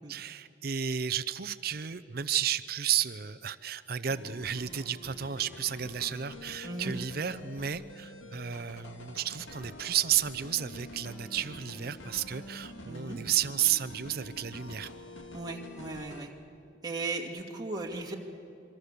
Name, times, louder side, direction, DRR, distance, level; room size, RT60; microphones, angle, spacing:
voice 1, 0.1-14.9, right 9 dB, 50° right, 14 dB, 0.6 m, -32 dB
sound 1, 4.1-16.3, left 1 dB, 90° left, 2.2 m, -47 dB
voice 2, 6.6-6.9 12.9-13.2 15.3-16.3 16.8-18.1, right 3 dB, 20° right, -1 dB, 2.3 m, -37 dB
27.5 x 24.0 x 6.8 m, 2.7 s
head